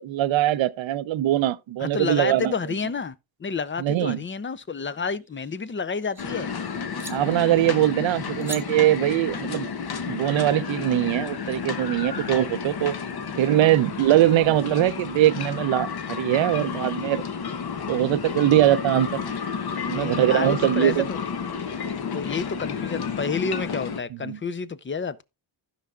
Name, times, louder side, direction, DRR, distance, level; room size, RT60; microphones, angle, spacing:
voice 1, 0.0-2.5 3.8-4.2 7.1-9.7 10.1-12.9 13.4-17.2 17.9-19.1 19.9-21.1 24.2-24.4, right 13 dB, 70° right, 0.7 m, -22 dB
voice 2, 1.8-6.5 19.8-21.2 22.1-25.2, left 5 dB, 25° left, 0.6 m, -30 dB
sound 1, 5.2-6.3 7.0-7.2 8.4-8.6, right 2 dB, 5° right, 1.3 m, -39 dB
sound 2, 6.2-24.0, left 6 dB, 50° left, 1.0 m, -31 dB
16.0 x 5.6 x 2.4 m
cardioid pair, 85°, 47 cm